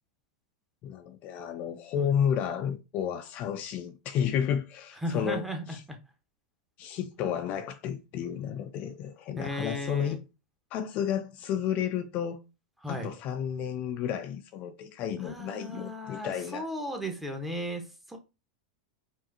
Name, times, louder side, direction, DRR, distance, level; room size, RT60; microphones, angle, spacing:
voice 1, 0.8-5.4 5.7-5.8 6.8-10.2 10.7-12.4 12.9-16.6, left 8 dB, 45° left, 0.4 m, -31 dB
voice 2, 5.0-6.0 9.4-10.2 12.8-13.1 15.2-18.2, equal, 5° right, 1.0 m, -36 dB
4.7 x 2.6 x 2.7 m
hypercardioid pair, 100°, 4 cm